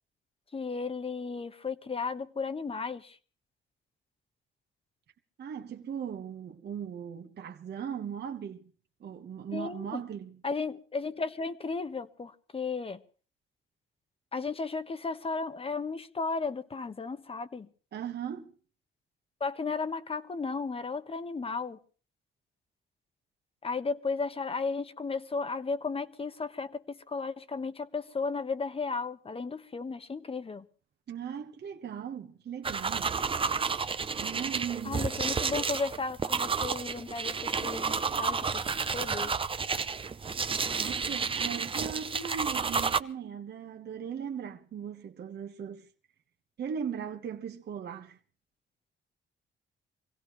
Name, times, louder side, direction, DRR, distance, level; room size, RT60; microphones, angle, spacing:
voice 1, 0.5-3.2 9.5-10.0 10.4-13.0 14.3-17.7 19.4-21.8 23.6-30.7 34.8-39.3, left 4 dB, 30° left, 1.1 m, -34 dB
voice 2, 5.4-8.6 9.0-10.4 17.9-18.5 31.1-33.2 34.2-35.1 40.8-45.8 46.6-48.2, right 8 dB, 55° right, 1.4 m, -38 dB
sound 1, 32.6-43.0, right 5 dB, 25° right, 0.7 m, -31 dB
25.0 x 16.5 x 3.1 m
cardioid pair, 90°, 20 cm